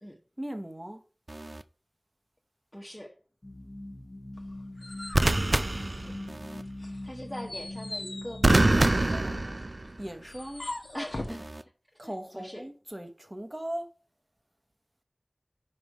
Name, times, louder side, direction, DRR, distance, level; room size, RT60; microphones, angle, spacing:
voice 1, 0.4-1.0 5.8-6.5 8.8-9.4 10.0-10.7 12.0-13.9, right 1 dB, 25° right, 1.0 m, -39 dB
sound 1, 1.3-1.6 5.1-6.6 8.4-10.1 11.3-11.6, right 2 dB, 65° right, 0.4 m, -25 dB
voice 2, 2.7-3.1 7.0-8.9 10.9-11.5 12.0-12.6, equal, 5° left, 1.1 m, -41 dB
sound 2, 3.4-9.4, left 1 dB, 40° left, 0.9 m, -41 dB
sound 3, 4.4-6.4 6.8-11.4, left 1 dB, 75° left, 1.1 m, -41 dB
5.4 x 5.0 x 4.7 m
wide cardioid pair, 45°, 0 cm